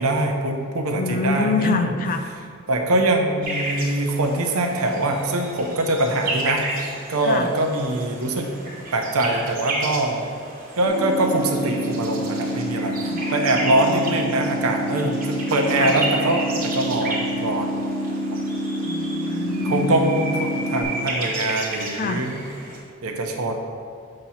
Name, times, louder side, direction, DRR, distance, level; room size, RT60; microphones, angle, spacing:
voice 1, 0.0-1.9 2.7-8.5 8.9-10.2 10.8-17.7 18.3-18.4 19.6-22.3 23.0-23.5, right 2 dB, 90° right, 3 dB, 0.7 m, -23 dB
voice 2, 1.0-2.3 7.2-7.5 13.0-13.6 15.8-15.9 18.8-20.1 21.9-22.3, left 4 dB, 40° left, 8 dB, 0.3 m, -26 dB
sound 1, 3.4-22.8, right 2 dB, 40° right, 1.3 m, -33 dB
sound 2, 10.8-20.8, equal, 80° left, 1.5 m, -27 dB
7.5 x 2.8 x 5.6 m, 2.2 s
head